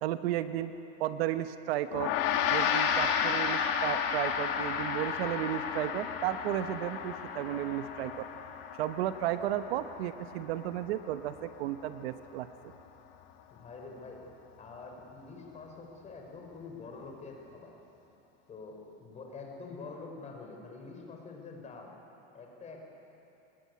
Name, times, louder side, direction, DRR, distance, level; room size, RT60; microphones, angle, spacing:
voice 1, 0.0-0.7 1.0-2.1 2.5-8.3 8.8-12.7, right 12 dB, 70° right, 10 dB, 1.2 m, -33 dB
Gong, 1.9-11.4, left 7 dB, 60° left, 2.7 m, -32 dB
voice 2, 13.5-17.7 18.5-21.9 22.3-22.8, left 4 dB, 20° left, 1 dB, 4.6 m, -46 dB
24.5 x 20.5 x 9.6 m, 3.0 s
supercardioid pair, 150°, 32 cm